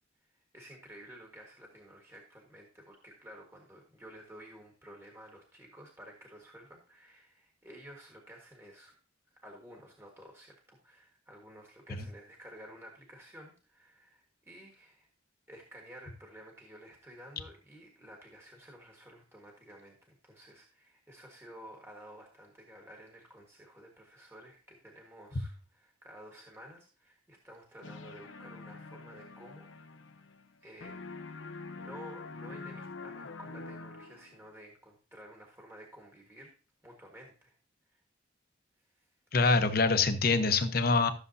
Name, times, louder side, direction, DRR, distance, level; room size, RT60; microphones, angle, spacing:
voice 1, 0.2-8.9 9.3-15.1 15.5-29.7 29.9-30.1 30.6-31.1 31.8-36.5 36.8-37.5 37.9-38.0 38.8-39.1, equal, 15° right, 0 dB, 1.5 m, -52 dB
sound 1, 27.8-30.6 30.8-34.4, left 3 dB, 85° left, 0.8 m, -45 dB
voice 2, 39.3-41.1, left 4 dB, 50° left, 8 dB, 0.9 m, -25 dB
13.5 x 6.8 x 2.7 m, 0.37 s
head